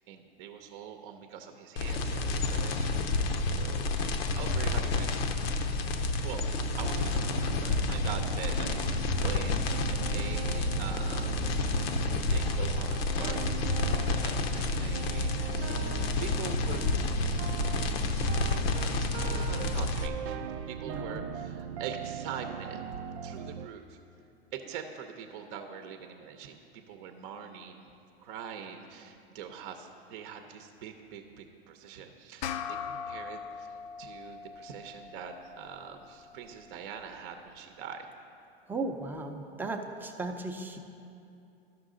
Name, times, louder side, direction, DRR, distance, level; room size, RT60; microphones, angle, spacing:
voice 1, 0.1-3.1 3.5-5.4 6.2-9.6 9.9-11.4 12.1-20.2 20.7-24.0 24.5-27.9 28.2-33.7 34.0-38.1, right 7 dB, 50° right, 6 dB, 0.7 m, -44 dB
sound 1, 1.8-20.1, left 3 dB, 65° left, 0.8 m, -30 dB
sound 2, 6.8-23.7, right 7 dB, 85° right, 0.5 m, -39 dB
voice 2, 20.9-21.2 38.7-40.8, right 3 dB, 5° right, 3 dB, 0.6 m, -36 dB
sound 3, 32.4-37.2, left 7 dB, 45° left, 0.4 m, -41 dB
13.0 x 5.9 x 3.8 m, 2.6 s
hypercardioid pair, 110°, 32 cm